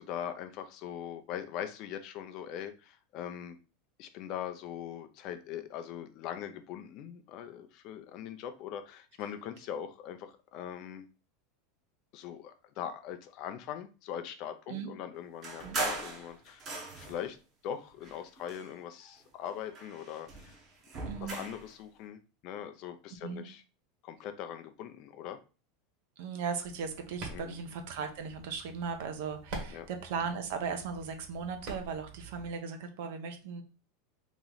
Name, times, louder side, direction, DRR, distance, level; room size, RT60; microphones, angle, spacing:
voice 1, 0.0-3.6 4.0-11.1 12.1-16.6 17.0-17.4 17.6-20.5 20.9-23.6 24.0-25.4 27.3-27.6 29.7-29.9, left 9 dB, 45° left, 8 dB, 0.5 m, -41 dB
sound 1, 15.4-17.3 18.0-19.1 19.5-21.7, right 3 dB, 30° right, 0.9 m, -39 dB
voice 2, 21.0-21.4 23.2-23.4 26.2-33.6, right 6 dB, 65° right, 6 dB, 0.7 m, -37 dB
sound 2, 26.6-32.5, right 2 dB, 45° right, 1.4 m, -46 dB
3.1 x 2.9 x 3.8 m, 0.34 s
supercardioid pair, 155°, 0 cm